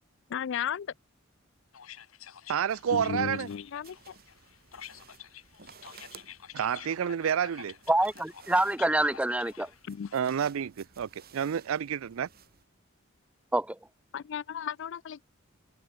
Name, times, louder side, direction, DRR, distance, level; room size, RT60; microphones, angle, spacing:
voice 1, 0.3-0.9 2.9-4.1 9.9-10.1 14.1-15.2, left 8 dB, 60° left, 0.4 m, -34 dB
sound 1, 1.7-10.3, left 10 dB, 85° left, 1.0 m, -49 dB
voice 2, 2.5-3.5 6.5-7.7 10.1-12.3, right 8 dB, 80° right, 0.4 m, -29 dB
sound 2, 2.7-12.6, right 6 dB, 50° right, 6.8 m, -56 dB
voice 3, 7.9-9.7 13.5-13.8, right 1 dB, 5° right, 0.6 m, -26 dB
open air
head